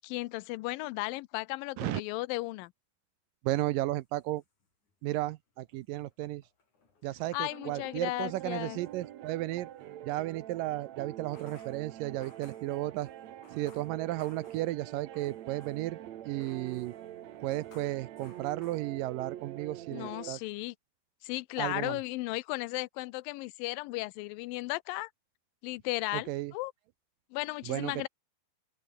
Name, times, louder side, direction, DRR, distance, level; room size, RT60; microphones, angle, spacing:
voice 1, 0.0-2.7 7.3-8.8 19.9-20.7 21.2-25.1 25.6-26.7 27.3-28.1, left 21 dB, 80° left, 2.1 m, -35 dB
voice 2, 3.4-4.4 5.0-6.4 7.0-9.7 10.0-13.1 13.5-16.0 16.3-16.9 17.4-20.4 21.6-22.0 26.1-26.5 27.7-28.1, right 16 dB, 80° right, 2.1 m, -34 dB
sound 1, 4.0-5.2 5.5-9.7 11.1-16.0 16.4-19.3, left 4 dB, 50° left, 7.1 m, -62 dB
sound 2, 7.5-20.3, right 12 dB, 65° right, 1.9 m, -46 dB
omnidirectional pair, 4.5 m